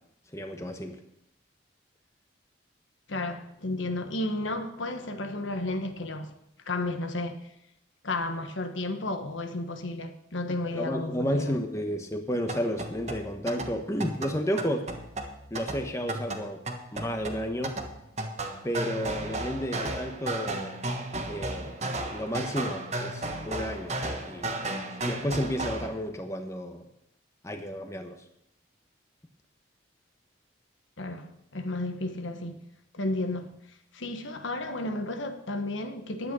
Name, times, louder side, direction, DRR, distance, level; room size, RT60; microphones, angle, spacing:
voice 1, 0.3-0.9 10.7-14.9 15.5-16.6 16.9-17.8 18.6-20.8 21.3-21.8 22.1-24.0 24.3-24.6 25.0-26.8 27.4-28.1, equal, 15° left, 1.0 m, -32 dB
voice 2, 3.1-6.3 6.7-7.4 8.0-11.6 31.0-32.6 32.9-33.5 33.9-36.3, left 2 dB, 80° left, 1.3 m, -32 dB
sound 1, 12.3-25.9, right 2 dB, 35° right, 1.4 m, -34 dB
11.0 x 9.1 x 6.2 m
head